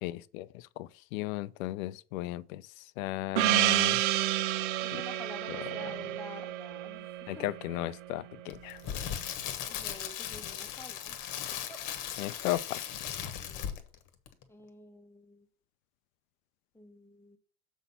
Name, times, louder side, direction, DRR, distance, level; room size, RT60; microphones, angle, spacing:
voice 1, 0.0-2.6 3.0-4.0 5.5-5.9 7.3-8.8 12.2-12.9, left 16 dB, 60° left, 0.6 m, -35 dB
Gong, 3.4-8.1, right 15 dB, 45° right, 0.5 m, -30 dB
voice 2, 4.8-7.1 7.4-7.5 9.6-11.8 14.5-15.4 16.7-17.4, left 1 dB, 5° left, 1.3 m, -49 dB
Crackle, 8.5-14.0 14.3-14.4, left 9 dB, 45° left, 1.3 m, -38 dB
7.1 x 4.1 x 5.5 m
hypercardioid pair, 100°, 45 cm